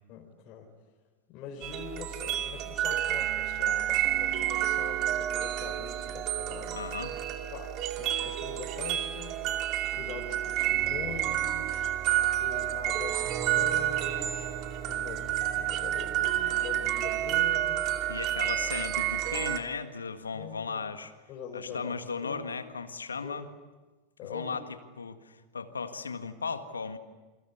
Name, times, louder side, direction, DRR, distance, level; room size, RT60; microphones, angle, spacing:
voice 1, 0.1-0.7 1.3-6.8 7.5-9.4 9.9-11.8 12.4-18.2 20.3-20.8 21.3-21.9 22.2-22.6 23.1-23.4 24.2-24.6, left 6 dB, 45° left, -1 dB, 4.6 m, -43 dB
sound 1, 1.6-19.6, right 12 dB, 45° right, 2.5 m, -30 dB
voice 2, 6.7-7.2 18.1-21.1 21.5-23.5 24.2-24.6 25.0-27.0, left 5 dB, 80° left, 9 dB, 1.7 m, -36 dB
29.0 x 24.5 x 8.4 m, 1.2 s
figure-of-eight pair, 85°, 0 cm